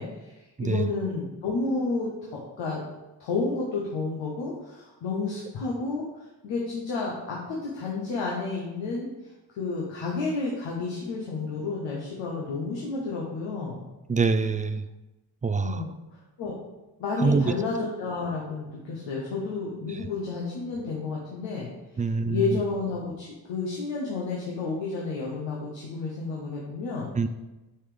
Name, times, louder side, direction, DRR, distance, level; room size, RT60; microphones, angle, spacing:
voice 1, 0.0-2.8 3.2-6.0 6.4-9.1 9.5-13.8 15.6-15.9 16.4-16.5 17.0-21.7 22.0-27.1, left 3 dB, 90° left, -4 dB, 1.0 m, -31 dB
voice 2, 14.1-14.8 15.4-15.8 17.2-17.4 22.0-22.6 27.2-27.3, right 4 dB, 20° right, 10 dB, 0.4 m, -24 dB
5.5 x 3.5 x 5.0 m, 1.0 s
supercardioid pair, 50°, 43 cm